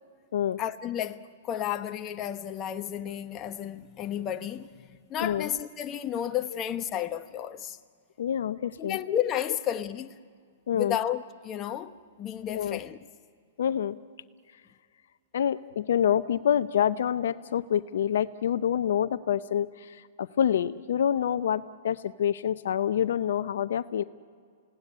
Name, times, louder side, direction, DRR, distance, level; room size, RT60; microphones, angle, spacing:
voice 1, 0.6-7.8 8.8-10.1 10.7-13.0, left 10 dB, 30° left, 1.1 m, -32 dB
voice 2, 8.2-9.0 10.7-11.0 12.5-12.8 13.6-14.0 15.3-24.0, left 9 dB, 75° left, 0.6 m, -27 dB
29.5 x 17.5 x 9.9 m
hypercardioid pair, 130°, 0 cm